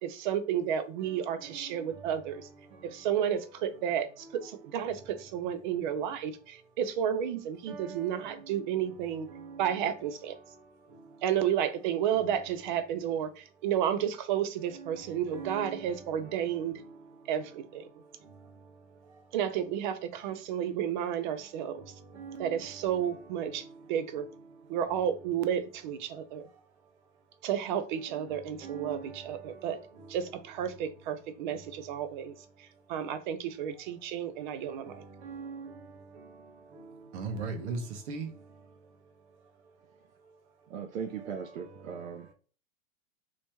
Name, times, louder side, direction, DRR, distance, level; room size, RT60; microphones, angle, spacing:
voice 1, 0.0-2.5 2.8-9.3 9.6-10.3 11.2-16.8 17.3-17.9 19.3-21.8 22.4-24.3 24.7-26.5 27.4-29.8 30.1-35.0, right 9 dB, 40° right, 0.5 m, -32 dB
voice 2, 7.7-8.2 15.3-15.8 22.2-22.6 28.6-29.0 35.2-35.7 37.1-37.8 38.1-38.3, right 4 dB, 55° right, 1.1 m, -38 dB
voice 3, 40.7-42.3, right 7 dB, 80° right, 0.7 m, -38 dB
3.0 x 2.9 x 3.3 m
hypercardioid pair, 145°, 40 cm